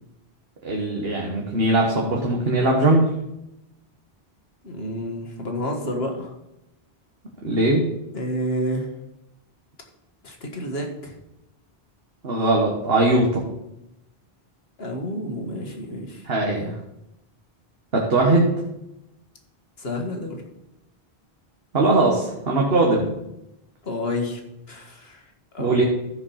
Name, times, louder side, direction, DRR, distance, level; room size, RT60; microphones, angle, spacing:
voice 1, 0.6-3.0 7.4-7.8 12.2-13.4 16.3-16.7 17.9-18.5 21.7-23.1 25.6-25.8, right 2 dB, 70° right, -1 dB, 1.7 m, -20 dB
voice 2, 4.6-6.3 8.1-8.9 10.2-11.1 14.8-16.3 19.8-20.4 23.8-24.4 24.7-25.8, left 1 dB, 75° left, 2 dB, 1.9 m, -30 dB
14.5 x 5.0 x 5.7 m, 0.88 s
omnidirectional pair, 1.1 m